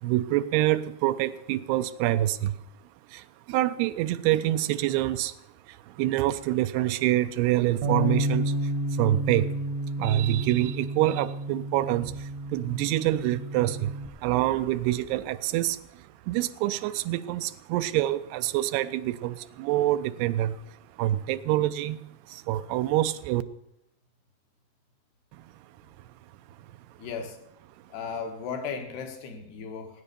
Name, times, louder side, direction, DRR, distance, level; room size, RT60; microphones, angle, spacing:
voice 1, 0.0-2.5 3.1-5.4 5.7-9.5 10.0-22.0 22.3-23.4 25.3-25.4, right 14 dB, 90° right, 11 dB, 2.7 m, -26 dB
Bass guitar, 7.8-14.1, right 1 dB, 70° right, 1.9 m, -31 dB
voice 2, 27.0-27.4 27.9-30.0, left 6 dB, 80° left, 5 dB, 3.7 m, -36 dB
17.0 x 9.8 x 6.8 m, 0.79 s
omnidirectional pair, 4.6 m